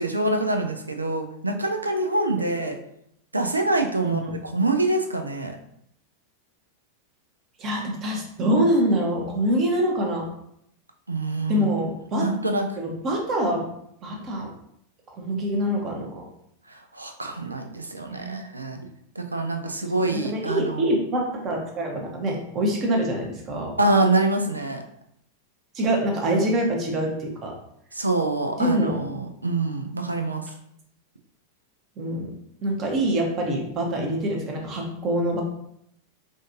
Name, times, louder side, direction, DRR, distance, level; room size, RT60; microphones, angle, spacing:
voice 1, 0.0-2.8 3.3-5.6 11.1-11.7 12.1-12.7 16.7-18.8 19.2-20.9 23.8-24.8 27.9-30.5, right 2 dB, 80° right, 5 dB, 0.4 m, -25 dB
voice 2, 4.0-4.3 7.6-10.2 11.5-12.3 12.8-13.6 14.0-14.5 15.1-16.3 18.1-18.4 20.1-23.7 25.7-27.5 28.6-29.0 32.0-32.3 32.6-35.4, right 1 dB, 30° right, 0 dB, 1.0 m, -25 dB
5.0 x 2.5 x 2.6 m, 0.74 s
figure-of-eight pair, 90°, 0 cm